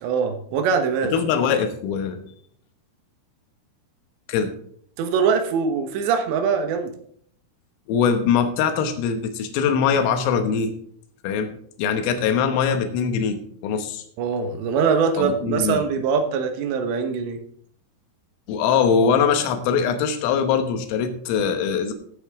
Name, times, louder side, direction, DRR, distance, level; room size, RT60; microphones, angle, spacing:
voice 1, 0.0-1.1 5.0-6.9 14.2-17.4, right 6 dB, 70° right, 6 dB, 3.1 m, -22 dB
voice 2, 1.1-2.2 4.3-4.5 7.9-10.7 11.2-11.5 11.8-14.0 15.2-15.8 18.5-21.9, left 6 dB, 90° left, 7 dB, 3.9 m, -22 dB
15.5 x 8.1 x 3.6 m, 0.63 s
omnidirectional pair, 5.8 m